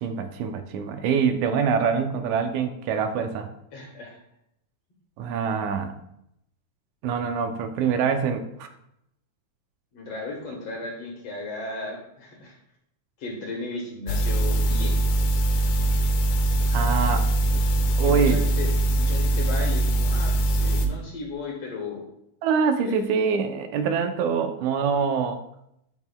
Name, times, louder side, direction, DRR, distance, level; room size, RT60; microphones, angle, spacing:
voice 1, 0.0-3.5 5.2-5.9 7.0-8.7 16.7-17.7 18.0-18.4 22.4-25.4, right 6 dB, 80° right, 7 dB, 2.0 m, -25 dB
voice 2, 3.7-4.2 9.9-12.6 13.2-15.0 17.2-17.3 18.0-22.0 22.8-23.0, left 3 dB, 60° left, 1 dB, 2.1 m, -35 dB
sound 1, 14.1-20.9, right 1 dB, 80° left, 2.2 m, -22 dB
10.5 x 6.2 x 2.2 m, 0.78 s
omnidirectional pair, 3.5 m